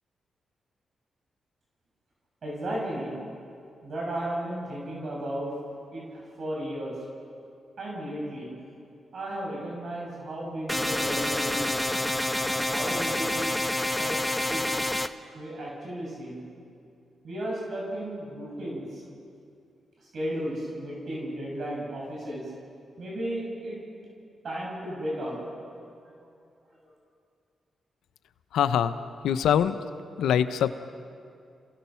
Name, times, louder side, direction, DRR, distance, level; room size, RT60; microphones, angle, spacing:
voice 1, 2.4-3.1 3.8-5.5 5.9-6.9 7.8-8.5 9.1-11.9 12.4-13.4 14.0-14.2 14.5-14.6 15.3-16.4 17.2-19.0 20.1-22.4 23.0-23.8 24.4-25.5, right 1 dB, 65° right, -3 dB, 7.0 m, -34 dB
sound 1, 10.7-15.1, left 1 dB, 10° left, 0.9 m, -28 dB
voice 2, 28.5-29.0 29.2-29.8 30.2-30.7, left 9 dB, 90° left, 12 dB, 0.7 m, -23 dB
28.0 x 17.0 x 5.8 m, 2.4 s
cardioid pair, 55°, 0 cm